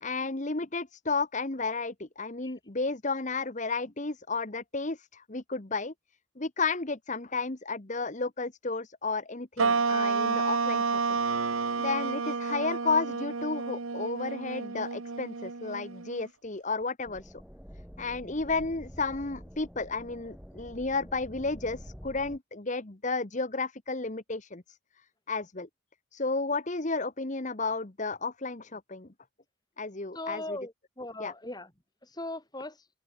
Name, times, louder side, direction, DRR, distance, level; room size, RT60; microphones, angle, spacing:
voice 1, 0.0-5.9 6.4-10.8 11.1-11.2 11.8-17.4 18.0-24.8 25.3-25.7 26.1-29.1 29.8-30.6 31.2-31.3, left 3 dB, 35° left, 1.2 m, -32 dB
sound 1, 9.6-16.3, right 4 dB, 75° right, 1.1 m, -30 dB
sound 2, 17.0-22.4, equal, ahead, 3.6 m, -47 dB
voice 2, 30.1-31.7 32.0-32.8, left 1 dB, 20° left, 4.5 m, -39 dB
open air
head